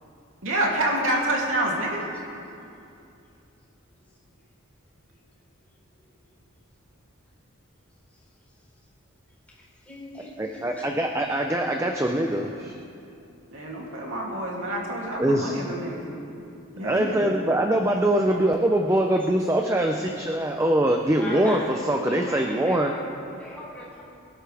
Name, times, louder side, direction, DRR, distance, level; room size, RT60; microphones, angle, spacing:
voice 1, 0.4-2.0 13.5-16.0 16.7-17.3, right 1 dB, 70° right, -3 dB, 2.8 m, -27 dB
voice 2, 9.5-11.1 21.2-24.0, left 1 dB, 5° left, -6 dB, 3.9 m, -39 dB
voice 3, 10.4-12.7 15.2-15.6 16.8-22.9, right 1 dB, 15° right, 3 dB, 0.6 m, -23 dB
23.5 x 12.5 x 3.5 m, 2.6 s
head